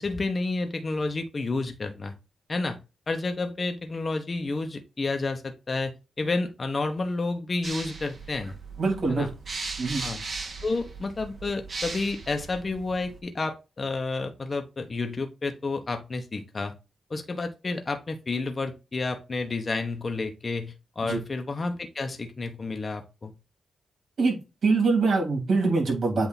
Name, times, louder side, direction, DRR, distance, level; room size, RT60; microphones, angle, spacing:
voice 1, 0.0-2.1 2.5-2.8 3.1-8.6 9.1-9.3 10.0-10.2 10.6-16.7 17.1-23.3, left 3 dB, 35° left, 5 dB, 1.0 m, -30 dB
sound 1, 7.6-13.2, right 3 dB, 50° right, 1.7 m, -38 dB
voice 2, 8.8-9.3 9.8-10.0 21.1-21.2 24.2-26.3, right 3 dB, 70° right, 1 dB, 3.1 m, -24 dB
8.1 x 2.8 x 4.2 m, 0.27 s
cardioid pair, 95°, 0 cm